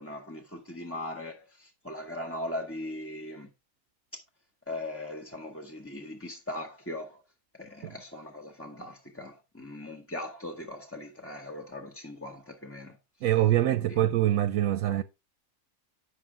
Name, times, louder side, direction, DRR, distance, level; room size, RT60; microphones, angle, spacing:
voice 1, 0.0-3.5 4.7-7.2 7.6-13.0 13.9-14.0, left 1 dB, 10° left, 1.0 m, -39 dB
voice 2, 13.2-15.0, right 13 dB, 80° right, 1.0 m, -24 dB
9.2 x 6.6 x 3.5 m
omnidirectional pair, 1.4 m